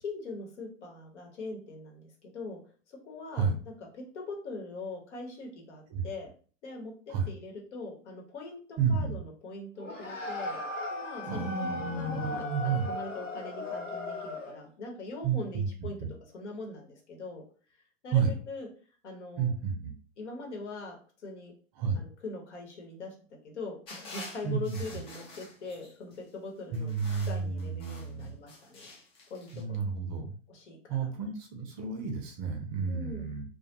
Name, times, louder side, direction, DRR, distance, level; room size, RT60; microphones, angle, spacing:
voice 1, 0.0-2.6 2.9-3.5 4.1-6.3 6.6-10.6 10.9-16.0 16.3-17.4 18.0-18.7 19.0-19.5 20.2-21.0 21.2-21.5 22.0-23.1 23.4-26.9 27.3-28.9 29.3-29.8 30.5-31.1 32.9-33.3, left 3 dB, 65° left, 1 dB, 1.0 m, -42 dB
voice 2, 8.8-9.2 11.3-12.9 15.2-16.1 18.1-18.3 19.4-19.9 21.8-22.0 24.4-25.0 26.7-28.3 29.5-30.4 30.9-33.4, right 6 dB, 30° right, 3 dB, 0.5 m, -31 dB
sound 1, 9.8-14.7, left 2 dB, 90° left, 0.7 m, -37 dB
sound 2, 23.9-26.2 26.7-29.6, left 2 dB, 15° left, 0.4 m, -48 dB
2.2 x 2.2 x 2.8 m, 0.41 s
figure-of-eight pair, 105°, 37 cm